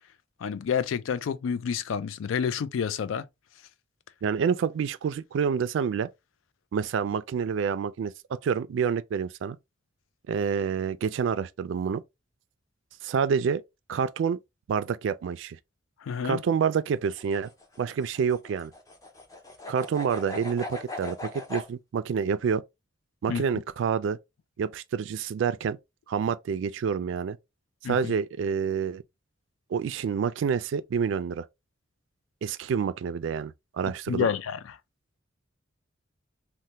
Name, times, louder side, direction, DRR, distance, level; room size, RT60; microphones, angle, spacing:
voice 1, 0.4-3.3 16.0-16.4 23.3-23.4 27.8-28.0 34.1-34.6, left 7 dB, 90° left, 0.3 m, -28 dB
voice 2, 4.2-6.1 6.7-9.6 10.3-12.0 13.0-13.6 13.9-14.4 14.7-15.6 16.2-17.5 17.8-18.7 19.7-22.6 23.2-24.2 24.6-25.8 26.1-27.4 27.8-29.0 29.7-31.4 32.4-34.3, right 6 dB, 70° right, 0.3 m, -28 dB
sound 1, 16.9-21.7, left 2 dB, 15° left, 0.6 m, -40 dB
3.2 x 2.1 x 2.8 m
head